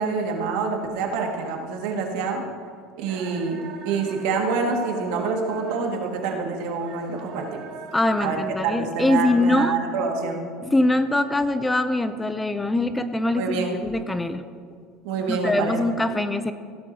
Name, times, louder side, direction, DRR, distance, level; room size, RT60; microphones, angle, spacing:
voice 1, 0.0-2.4 3.0-7.6 8.2-10.5 13.3-13.7 15.0-15.8, right 4 dB, 75° right, 1 dB, 1.9 m, -26 dB
sound 1, 3.1-8.3, right 5 dB, 55° right, 1.2 m, -41 dB
voice 2, 7.9-9.8 10.6-14.4 15.3-16.5, left 2 dB, 10° left, 10 dB, 0.5 m, -23 dB
16.0 x 11.5 x 2.8 m, 2.2 s
cardioid pair, 135°, 0 cm